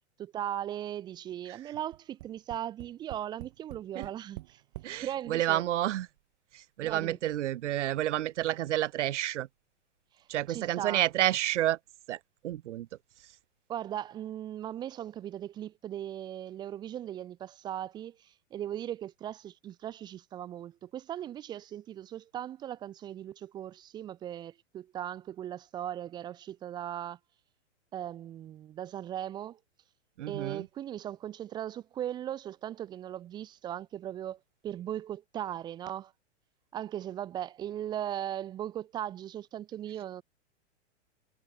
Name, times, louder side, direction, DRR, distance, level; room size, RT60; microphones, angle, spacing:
voice 1, 0.2-4.6 5.0-5.6 6.8-7.2 10.2-11.0 13.7-27.2 27.9-29.6 30.3-34.4 34.6-36.1 36.7-40.2, right 11 dB, 10° right, 0.6 m, -38 dB
Tap, 1.9-5.0 5.8-5.9 6.2-6.3, right 19 dB, 45° right, 4.3 m, -46 dB
voice 2, 4.8-6.1 6.5-9.5 10.3-11.8 12.1-12.2 12.4-12.9 30.2-30.7, right 13 dB, 75° right, 0.7 m, -30 dB
hypercardioid pair, 155°, 36 cm